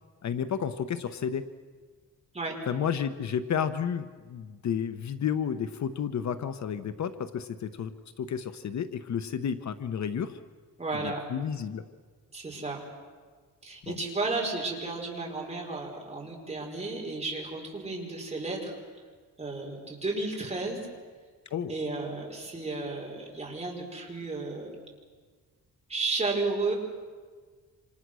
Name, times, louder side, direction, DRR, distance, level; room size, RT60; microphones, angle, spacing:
voice 1, 0.2-1.5 2.7-7.9 8.2-10.4 10.9-11.8 13.9-14.0 21.5-21.7, left 8 dB, 55° left, 10 dB, 1.0 m, -31 dB
voice 2, 10.8-11.2 12.3-12.8 13.6-18.7 19.4-20.8 21.7-24.7 25.9-26.7, right 3 dB, 20° right, -1 dB, 5.3 m, -33 dB
28.0 x 26.5 x 6.3 m, 1.5 s
wide cardioid pair, 160°, 33 cm